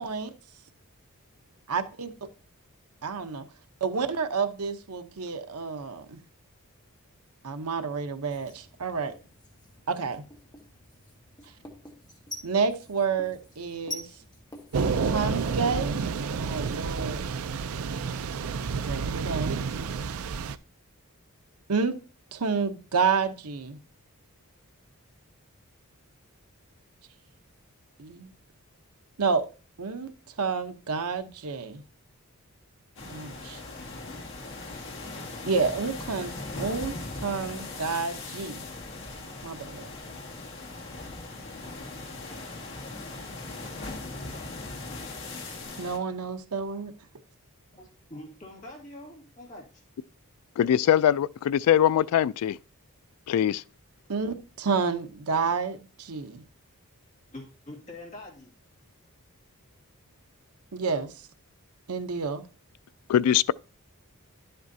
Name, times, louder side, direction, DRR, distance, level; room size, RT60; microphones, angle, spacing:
voice 1, 1.7-2.1 3.0-3.4 3.8-6.2 7.4-9.1 9.9-10.2 12.4-14.1 14.8-16.0 16.3-17.2 18.9-19.5 21.7-22.0 22.3-23.8 28.0-28.3 29.2-29.5 29.8-30.1 30.4-31.8 33.0-33.6 35.5-36.9 37.2-38.6 39.4-39.9 45.8-46.9 54.1-56.4 60.7-61.3 61.9-62.4, right 5 dB, 85° right, 0.8 m, -29 dB
Writing, 8.2-16.7, left 1 dB, 20° left, 1.5 m, -47 dB
Thunder / Rain, 14.7-20.6, right 5 dB, 70° right, 0.4 m, -30 dB
sound 1, 33.0-46.0, left 2 dB, 55° left, 1.8 m, -39 dB
voice 2, 47.7-49.8 57.3-58.5, left 1 dB, 35° left, 2.2 m, -44 dB
voice 3, 50.6-52.6 53.3-53.6 63.1-63.5, left 10 dB, 85° left, 0.3 m, -22 dB
11.0 x 7.8 x 2.7 m
head